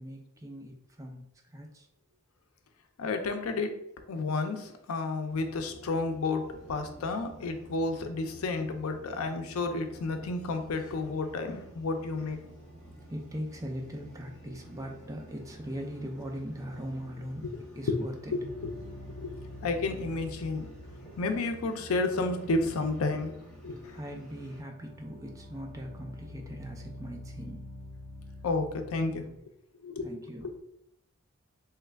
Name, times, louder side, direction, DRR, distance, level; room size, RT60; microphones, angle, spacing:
voice 1, 0.0-1.9 11.4-11.7 13.1-18.3 23.9-27.8 30.0-30.5, equal, 15° right, 2 dB, 0.4 m, -40 dB
voice 2, 3.0-12.4 17.9-18.0 18.3-19.4 19.6-20.7 21.2-23.4 23.6-24.0 28.4-29.3 29.8-30.1, left 3 dB, 85° left, 7 dB, 0.4 m, -31 dB
sound 1, 5.3-24.6, right 1 dB, 5° left, 1.2 m, -51 dB
sound 2, 18.4-29.2, left 1 dB, 80° right, 0.5 m, -47 dB
3.1 x 2.3 x 3.3 m, 0.74 s
head